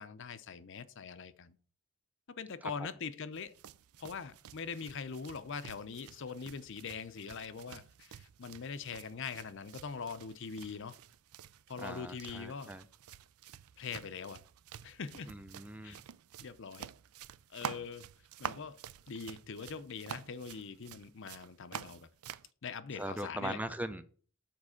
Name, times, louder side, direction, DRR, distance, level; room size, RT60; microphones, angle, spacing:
voice 1, 0.0-1.6 2.4-3.5 4.0-11.0 11.7-12.7 13.8-14.4 14.8-15.3 15.8-16.0 16.4-16.9 17.5-18.1 18.4-18.8 19.1-22.1 22.6-23.6, left 5 dB, 55° left, 0.6 m, -42 dB
sound 1, 3.3-22.5, right 8 dB, 75° right, 0.4 m, -49 dB
voice 2, 11.8-12.8 15.3-16.0 23.0-24.0, right 1 dB, 5° right, 0.4 m, -40 dB
7.3 x 4.6 x 6.3 m
head